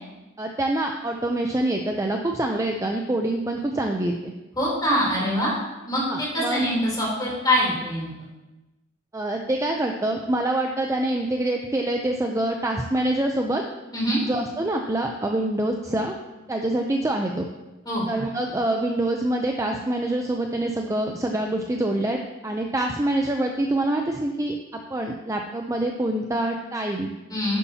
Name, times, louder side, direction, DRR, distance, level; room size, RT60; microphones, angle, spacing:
voice 1, 0.4-4.3 6.1-6.6 9.1-13.6 14.2-16.1 16.5-17.5 18.1-27.1, right 1 dB, 15° right, 2 dB, 0.5 m, -25 dB
voice 2, 4.5-5.5 5.9-8.1 13.9-14.2 17.8-18.2 27.3-27.6, equal, 20° left, -5 dB, 3.3 m, -24 dB
11.0 x 8.3 x 2.8 m, 1.1 s
head